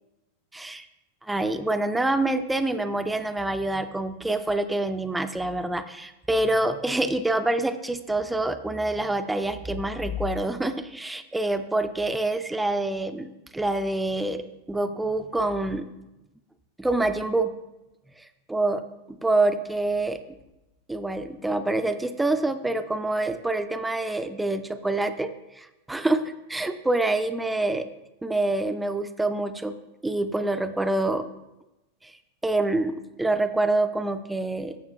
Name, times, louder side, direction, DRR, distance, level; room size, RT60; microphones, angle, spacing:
voice 1, 0.5-0.9 1.3-14.4 14.7-15.9 16.8-17.5 18.5-18.8 19.1-20.2 20.9-25.3 25.6-27.9 28.2-29.7 30.0-31.3 32.0-32.1 32.4-34.7, right 2 dB, 5° right, 9 dB, 0.4 m, -26 dB
14.0 x 7.1 x 2.3 m, 0.96 s
figure-of-eight pair, 90°, 0 cm